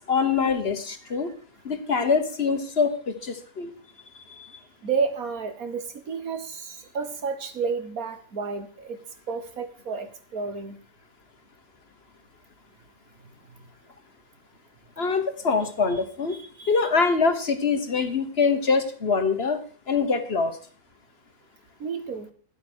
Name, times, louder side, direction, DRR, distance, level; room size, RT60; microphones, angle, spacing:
voice 1, 0.1-1.3 1.6-3.7 4.3-4.5 15.0-16.3 16.7-20.6, left 5 dB, 40° left, 8 dB, 1.4 m, -24 dB
voice 2, 4.8-9.0 9.3-10.8 15.9-16.0 16.3-16.8 21.8-22.3, right 5 dB, 60° right, 8 dB, 1.8 m, -31 dB
11.5 x 8.1 x 6.3 m, 0.43 s
omnidirectional pair, 1.7 m